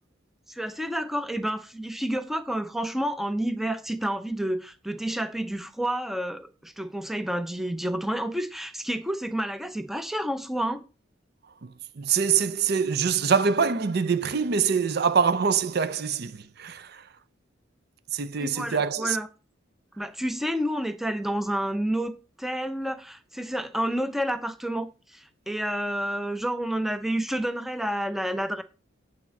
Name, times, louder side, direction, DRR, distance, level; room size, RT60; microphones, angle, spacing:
voice 1, 0.5-10.8 18.4-19.3 20.0-22.1 22.4-28.6, right 1 dB, ahead, 0.6 m, -29 dB
voice 2, 12.0-17.0 18.1-19.2, right 6 dB, 55° right, 0.6 m, -24 dB
8.8 x 4.3 x 7.0 m
head